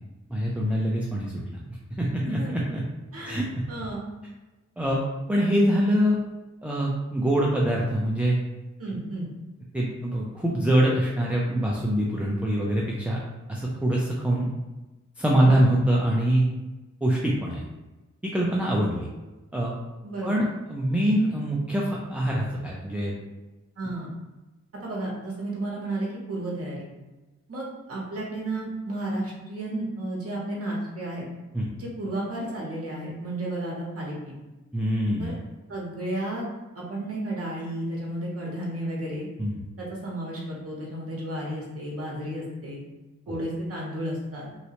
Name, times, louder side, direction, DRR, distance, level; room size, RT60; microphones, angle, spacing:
voice 1, 0.3-1.3 2.0-2.8 3.2-3.4 4.8-5.0 5.3-6.2 6.6-8.4 9.7-13.2 13.5-14.5 15.2-16.5 17.0-17.6 18.2-19.1 19.5-19.7 20.2-23.1 31.5-31.7 34.7-35.4 39.4-39.5, right 1 dB, 5° right, -4 dB, 0.3 m, -24 dB
voice 2, 3.1-4.1 8.8-9.3 15.4-15.6 20.0-20.4 23.8-24.1 24.8-26.9 27.5-31.2 31.8-34.3 35.2-35.3 35.7-36.5 36.7-39.3 39.8-42.8 43.3-44.5, right 1 dB, 50° right, -3 dB, 0.8 m, -32 dB
3.1 x 2.8 x 2.8 m, 1.1 s
wide cardioid pair, 160°, 30 cm